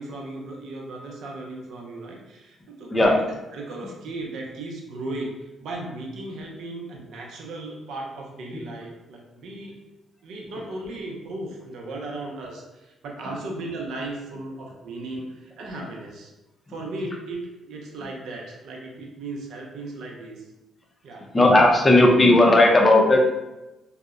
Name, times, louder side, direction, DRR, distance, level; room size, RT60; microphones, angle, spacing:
voice 1, 0.0-3.3 3.5-9.7 10.2-16.3 16.7-20.5 21.0-21.3, right 2 dB, 75° right, 0 dB, 0.5 m, -36 dB
voice 2, 21.3-23.3, left 1 dB, 25° left, 0 dB, 0.5 m, -15 dB
2.7 x 2.0 x 2.3 m, 0.99 s
cardioid pair, 90°, 0 cm